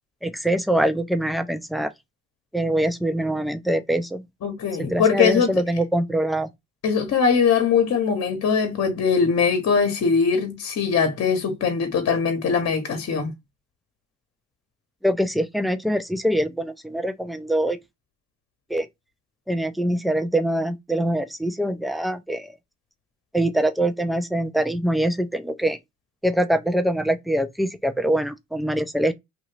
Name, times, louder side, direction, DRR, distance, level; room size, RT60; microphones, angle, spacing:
voice 1, 0.2-1.9 2.5-4.2 4.8-6.5 15.0-17.8 18.7-18.9 19.5-22.5 23.3-25.8 26.2-29.1, right 1 dB, ahead, 0.4 m, -24 dB
voice 2, 4.4-5.5 6.8-13.3, left 6 dB, 55° left, 0.9 m, -21 dB
2.8 x 2.5 x 3.2 m
cardioid pair, 90°, 30 cm